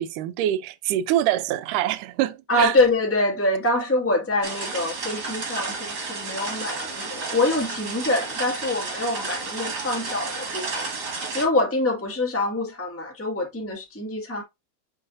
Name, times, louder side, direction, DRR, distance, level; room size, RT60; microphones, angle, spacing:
voice 1, 0.0-2.7, right 12 dB, 80° right, 2.2 m, -25 dB
voice 2, 2.5-14.4, left 2 dB, 5° left, 1.1 m, -25 dB
sound 1, 4.4-11.5, right 3 dB, 35° right, 2.1 m, -32 dB
8.1 x 4.4 x 2.6 m
omnidirectional pair, 3.9 m